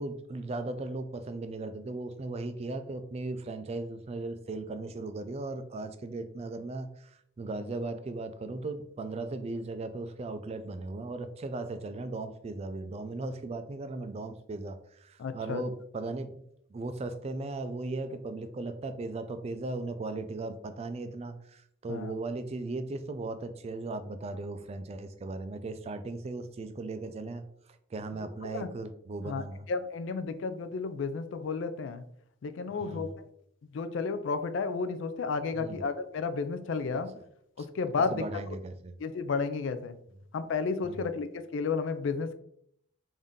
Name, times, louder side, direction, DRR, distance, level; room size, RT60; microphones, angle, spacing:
voice 1, 0.0-16.4 16.7-27.4 27.9-29.7 32.7-33.2 35.5-35.8 36.9-37.0 37.6-37.7 38.1-38.9 40.8-41.1, right 2 dB, 35° right, 9 dB, 0.3 m, -37 dB
voice 2, 15.2-15.6 21.9-22.1 28.5-28.7 29.2-32.0 32.4-33.1 33.7-37.1 37.6-38.2 39.0-40.0 40.3-42.4, left 4 dB, 70° left, 10 dB, 0.4 m, -32 dB
3.6 x 2.6 x 3.6 m, 0.71 s
head